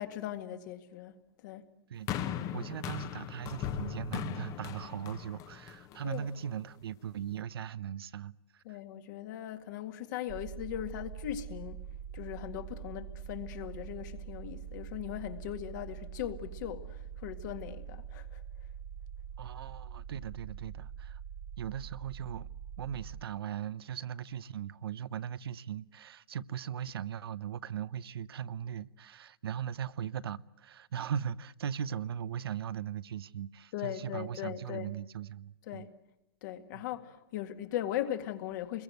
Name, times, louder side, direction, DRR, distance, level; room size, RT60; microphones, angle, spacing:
voice 1, 0.0-1.7 6.0-6.3 8.7-11.8 12.1-18.4 33.7-34.9 35.7-35.9 36.4-38.8, left 12 dB, 50° left, 2.1 m, -39 dB
voice 2, 1.9-8.8 19.4-21.2 21.6-22.5 22.8-35.9 36.7-36.8, right 9 dB, 80° right, 0.8 m, -39 dB
sound 1, 2.1-6.4 7.2-7.3, left 9 dB, 25° left, 1.1 m, -38 dB
sound 2, 10.3-23.2, right 8 dB, 35° right, 0.8 m, -44 dB
26.5 x 22.0 x 8.0 m
hypercardioid pair, 145°, 13 cm